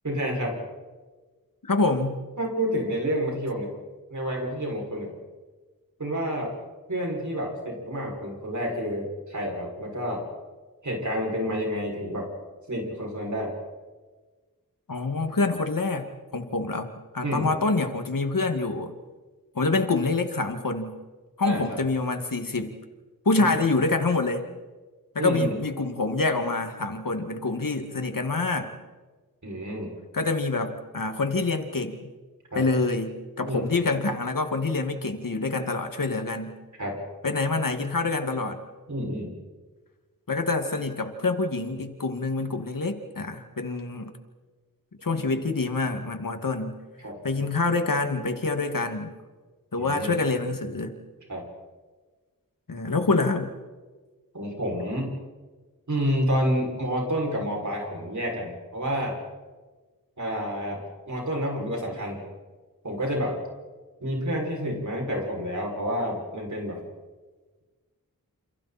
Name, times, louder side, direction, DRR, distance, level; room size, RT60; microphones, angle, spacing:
voice 1, 0.0-0.6 2.4-3.7 4.1-5.1 6.0-6.5 6.9-10.2 10.8-12.3 12.7-13.5 17.2-17.5 21.4-21.8 23.3-23.6 25.2-25.5 29.4-29.9 32.5-32.6 33.5-33.6 36.8-37.0 38.9-39.3 47.0-47.2 49.8-50.1 51.3-51.4 54.3-55.1 55.9-59.2 60.2-62.2 62.8-63.3 64.0-66.8, equal, 55° right, 0 dB, 6.6 m, -29 dB
voice 2, 1.6-2.2 14.9-18.9 19.5-20.9 21.4-22.7 23.3-24.4 25.1-28.7 30.1-32.0 32.5-36.6 37.2-38.6 40.3-44.1 45.0-46.8 47.2-49.1 49.7-50.9 52.7-53.5, left 3 dB, 65° left, 6 dB, 2.3 m, -26 dB
29.0 x 28.0 x 4.4 m, 1.3 s
wide cardioid pair, 75°, 36 cm